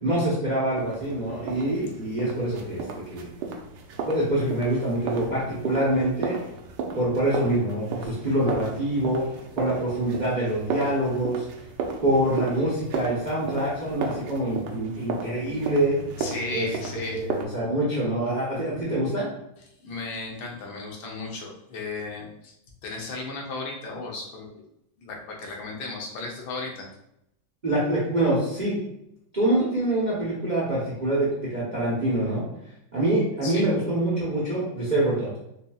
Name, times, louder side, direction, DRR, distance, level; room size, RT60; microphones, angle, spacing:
voice 1, 0.0-2.8 3.1-3.3 4.0-6.4 6.9-9.2 9.6-11.5 12.0-16.0 16.5-19.3 27.6-28.8 29.3-32.4 32.9-35.3, right 1 dB, 40° right, -6 dB, 0.6 m, -25 dB
sound 1, 0.8-17.4, right 4 dB, 70° right, 1.1 m, -35 dB
voice 2, 16.2-17.2 19.8-22.6 22.8-24.5 25.0-26.9 33.4-33.7, left 3 dB, 75° left, -1 dB, 1.6 m, -35 dB
5.2 x 2.6 x 2.3 m, 0.80 s
omnidirectional pair, 2.2 m